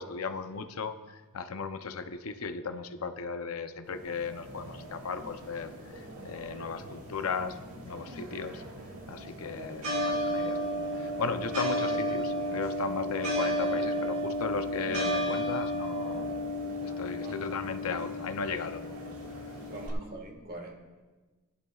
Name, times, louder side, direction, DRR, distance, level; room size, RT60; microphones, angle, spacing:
voice 1, 0.0-7.6 7.8-8.6 9.1-16.3 16.8-18.8, left 5 dB, 70° left, 8 dB, 0.6 m, -36 dB
sound 1, 3.9-19.9, equal, 85° right, 1.8 m, -34 dB
voice 2, 19.6-20.7, right 2 dB, 45° right, 2 dB, 1.6 m, -43 dB
17.0 x 11.0 x 2.4 m, 1.3 s
head